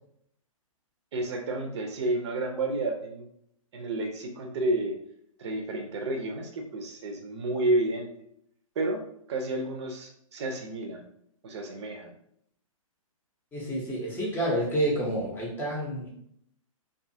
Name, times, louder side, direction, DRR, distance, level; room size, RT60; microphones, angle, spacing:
voice 1, 1.1-3.3 3.7-5.0 5.4-8.1 8.8-9.0 9.3-11.0 11.4-12.1, right 2 dB, 50° right, 2 dB, 0.6 m, -30 dB
voice 2, 13.5-16.1, right 1 dB, 10° left, -3 dB, 0.7 m, -29 dB
2.6 x 2.4 x 2.6 m, 0.71 s
hypercardioid pair, 125°, 18 cm